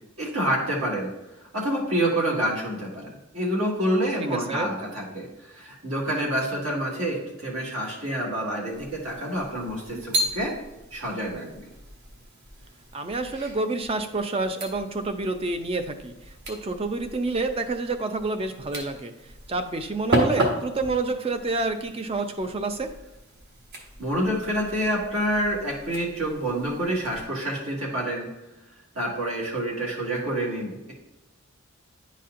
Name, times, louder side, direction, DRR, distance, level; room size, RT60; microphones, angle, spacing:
voice 1, 0.2-1.1 1.5-10.5 10.9-11.6 24.0-28.3 29.0-30.9, right 1 dB, 70° right, -3 dB, 1.9 m, -27 dB
voice 2, 4.3-4.7 9.9-10.0 12.9-22.9, right 3 dB, 25° right, 8 dB, 0.4 m, -28 dB
sound 1, 8.7-27.3, right 1 dB, 50° right, 1.0 m, -35 dB
10.0 x 4.2 x 2.5 m, 0.99 s
head